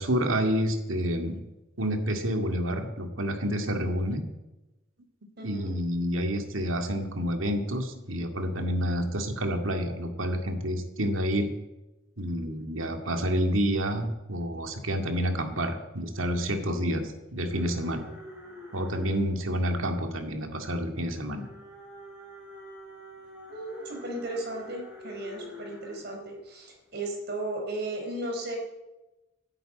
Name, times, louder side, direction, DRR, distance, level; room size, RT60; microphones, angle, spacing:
voice 1, 0.0-1.4 1.8-4.2 5.4-11.5 12.2-18.1 18.7-21.5, equal, 90° right, 5 dB, 2.2 m, -29 dB
voice 2, 5.4-5.7 23.5-28.6, right 1 dB, 55° right, 1 dB, 4.6 m, -35 dB
sound 1, 17.5-26.1 26.6-27.0 27.2-27.3, equal, 10° right, 6.1 m, -46 dB
13.0 x 10.5 x 8.9 m, 1.0 s
head